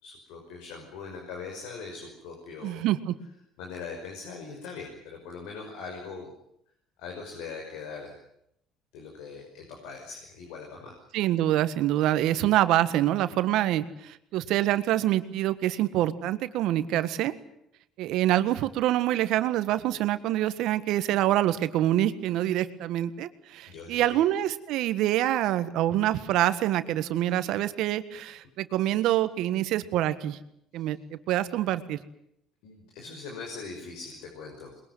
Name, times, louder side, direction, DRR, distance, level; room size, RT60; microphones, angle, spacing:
voice 1, 0.0-2.9 3.6-6.3 7.0-8.1 8.9-10.9 23.7-24.2 30.7-30.9 32.6-34.8, left 4 dB, 80° left, 1 dB, 5.7 m, -41 dB
voice 2, 2.6-3.1 11.1-17.3 18.0-30.4 30.7-32.0, right 13 dB, 70° right, 12 dB, 1.6 m, -26 dB
22.0 x 21.5 x 9.6 m, 0.75 s
supercardioid pair, 80°, 0 cm